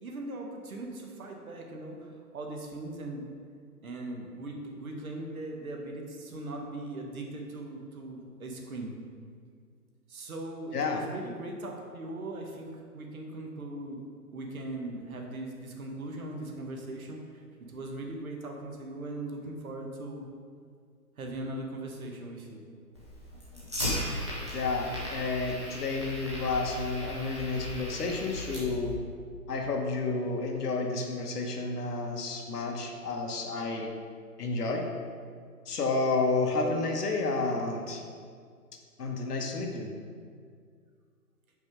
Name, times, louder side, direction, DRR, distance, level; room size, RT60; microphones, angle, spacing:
voice 1, 0.0-3.2 3.8-8.9 10.1-14.0 14.3-20.3 21.2-22.7, right 2 dB, 60° right, 1 dB, 1.2 m, -39 dB
voice 2, 10.7-11.0 24.5-28.9 29.5-33.9 34.4-34.9 35.6-38.0 39.0-39.9, left 3 dB, 75° left, 2 dB, 1.2 m, -30 dB
Fire, 22.9-28.9, left 1 dB, 20° right, 0.6 m, -36 dB
5.3 x 4.8 x 4.9 m, 2.1 s
hypercardioid pair, 170°, 47 cm